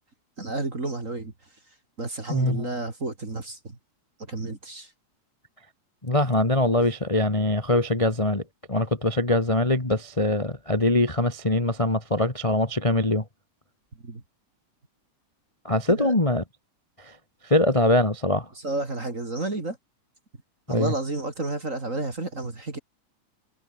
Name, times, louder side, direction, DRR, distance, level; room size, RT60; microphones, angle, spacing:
voice 1, 0.4-1.3 2.0-3.8 4.3-4.9 14.0-14.2 15.9-16.1 18.6-19.8 20.7-22.8, right 2 dB, 25° right, 3.2 m, -31 dB
voice 2, 2.3-2.7 6.0-8.4 8.7-13.2 15.6-16.4 17.1-17.2 17.4-18.5 20.7-20.9, left 1 dB, 10° left, 2.0 m, -23 dB
omnidirectional pair, 3.5 m